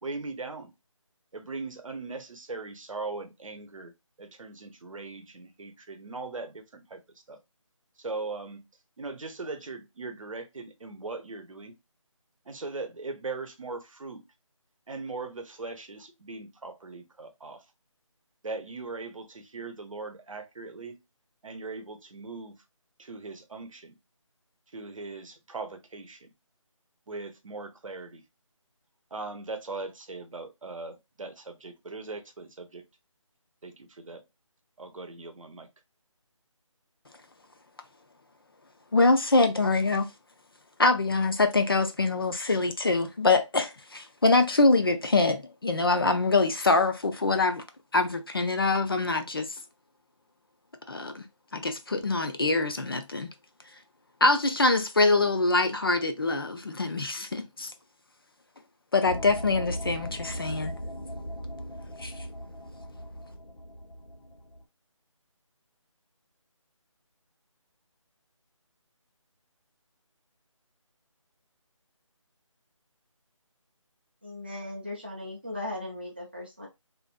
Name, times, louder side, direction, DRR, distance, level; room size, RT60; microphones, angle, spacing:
voice 1, 0.0-0.7 1.3-3.9 4.2-7.0 7.3-7.4 8.0-8.6 9.0-11.8 12.5-14.2 14.9-17.6 18.4-21.0 21.4-22.6 23.0-24.0 24.7-26.3 27.1-28.2 29.1-32.9 33.6-34.2 34.8-35.7, right 3 dB, 75° right, 0.7 m, -39 dB
voice 2, 38.9-40.1 40.8-47.6 47.9-49.5 50.9-51.3 51.5-53.3 54.2-57.7 58.9-60.7 62.0-62.1, left 3 dB, 45° left, 0.4 m, -24 dB
sound 1, 59.0-64.6, equal, 90° left, 0.9 m, -38 dB
voice 3, 74.2-76.7, left 1 dB, 20° right, 0.4 m, -37 dB
2.5 x 2.2 x 2.4 m
figure-of-eight pair, 170°, 17 cm